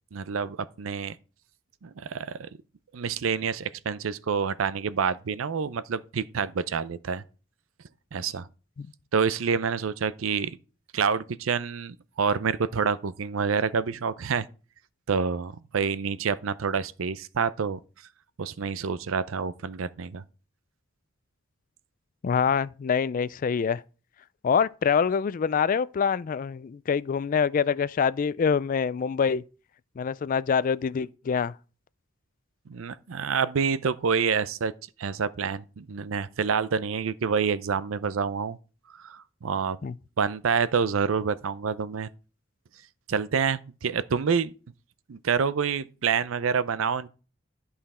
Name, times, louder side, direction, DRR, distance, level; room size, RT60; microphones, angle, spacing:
voice 1, 0.1-1.2 1.8-2.5 2.9-7.2 8.1-8.5 9.1-10.6 10.9-14.5 15.1-17.8 18.4-20.2 32.7-34.7 35.0-38.6 39.0-39.8 40.2-42.1 43.1-44.5 45.1-47.1, right 6 dB, 80° right, 0.5 m, -27 dB
voice 2, 22.2-23.8 24.4-29.4 30.0-31.5 39.8-39.9, left 6 dB, 40° left, 0.3 m, -25 dB
11.0 x 5.7 x 4.2 m
head